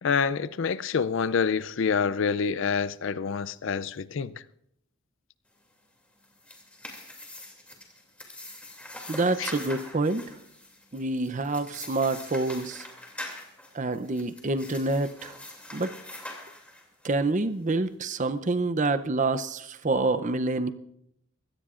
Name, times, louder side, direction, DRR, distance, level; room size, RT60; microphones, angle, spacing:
voice 1, 0.0-4.3 9.4-9.5, left 6 dB, 65° left, 0.4 m, -27 dB
sound 1, 6.2-17.1, left 1 dB, 5° left, 2.6 m, -43 dB
voice 2, 9.1-10.2 10.9-12.9 13.7-15.3 15.7-15.9 17.0-20.7, right 3 dB, 35° right, 0.6 m, -27 dB
23.5 x 16.5 x 2.5 m
head